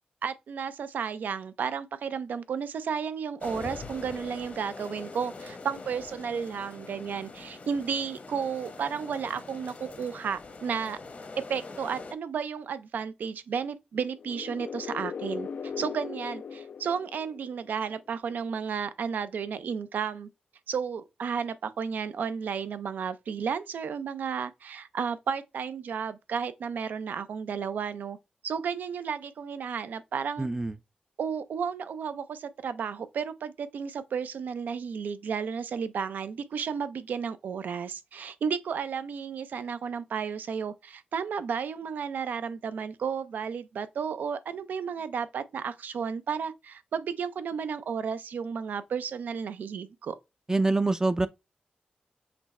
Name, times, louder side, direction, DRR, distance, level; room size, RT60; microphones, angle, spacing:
voice 1, 0.2-11.0 11.5-20.3 20.7-28.2 28.4-30.5 31.2-50.2, right 6 dB, 90° right, 0.5 m, -33 dB
sound 1, 3.4-12.1, left 3 dB, 55° left, 0.9 m, -43 dB
sound 2, 14.1-17.9, left 6 dB, 70° left, 0.3 m, -38 dB
voice 2, 30.4-30.8 50.5-51.3, right 2 dB, 20° right, 0.4 m, -25 dB
5.8 x 2.1 x 4.1 m
cardioid pair, 75°, 3 cm